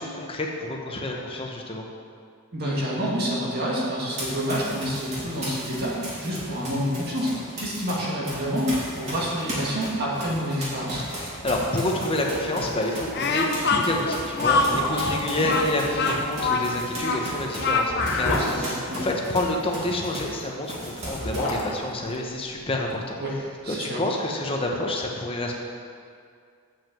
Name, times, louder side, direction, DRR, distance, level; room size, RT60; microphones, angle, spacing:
voice 1, 0.0-1.9 11.0-23.2 23.7-25.5, left 1 dB, 25° left, 0 dB, 1.0 m, -28 dB
voice 2, 2.5-11.0 15.3-15.5 18.4-19.1 23.2-23.3 23.6-24.0, equal, 45° right, -5 dB, 1.8 m, -28 dB
Run, 4.1-7.9 8.2-20.4 20.7-21.6, right 1 dB, 30° right, 2.6 m, -36 dB
sound 1, 11.3-12.0 12.3-12.4 12.8-13.0 13.7-13.8 14.4-15.3 16.9-19.5 20.8-23.0 23.3-23.4, left 1 dB, 85° left, 1.9 m, -32 dB
Speech, 13.1-18.5, left 4 dB, 50° left, 0.8 m, -24 dB
7.4 x 6.2 x 7.4 m, 2.2 s
head